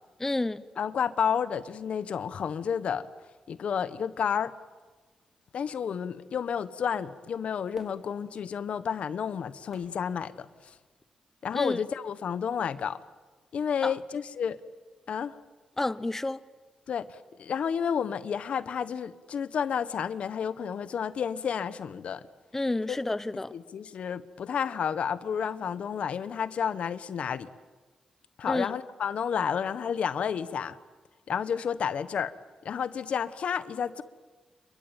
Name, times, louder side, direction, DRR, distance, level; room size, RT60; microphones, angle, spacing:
voice 1, 0.2-0.6 11.5-11.8 13.8-13.9 15.8-16.4 22.5-23.5 28.5-28.7, left 2 dB, 15° left, 1.0 m, -29 dB
voice 2, 0.8-3.1 3.5-4.5 5.5-10.5 11.4-13.0 13.5-14.6 15.1-15.4 16.9-22.2 22.9-23.0 23.5-27.5 28.4-30.8 31.3-32.3 32.6-34.0, left 7 dB, 70° left, 1.2 m, -31 dB
Fireworks, 7.7-11.1 11.6-11.7, right 1 dB, 20° right, 3.3 m, -57 dB
28.0 x 22.0 x 9.0 m
cardioid pair, 100°, 2 cm